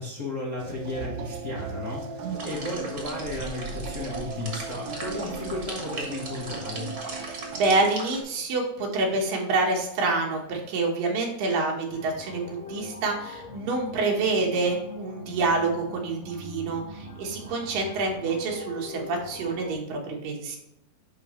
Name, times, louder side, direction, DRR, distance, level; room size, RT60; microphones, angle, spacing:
voice 1, 0.0-6.9, left 2 dB, 75° left, -6 dB, 0.7 m, -34 dB
sound 1, 0.6-7.9, right 5 dB, 70° right, 1.8 m, -37 dB
sound 2, 2.3-8.2, right 2 dB, 40° right, 1.4 m, -38 dB
voice 2, 7.2-20.6, right 3 dB, 85° right, 0 dB, 3.0 m, -27 dB
sound 3, 11.9-19.7, left 1 dB, 50° left, 1.7 m, -42 dB
10.5 x 3.8 x 3.1 m, 0.83 s
omnidirectional pair, 3.8 m